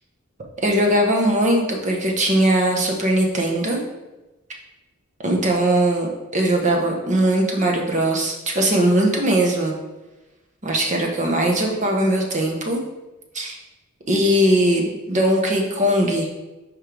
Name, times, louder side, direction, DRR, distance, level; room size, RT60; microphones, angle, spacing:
voice 1, 0.6-3.8 5.2-9.7 10.6-12.8 13.3-13.6 14.1-16.3, right 1 dB, 35° right, 0 dB, 1.2 m, -20 dB
10.5 x 3.8 x 3.5 m, 1.1 s
head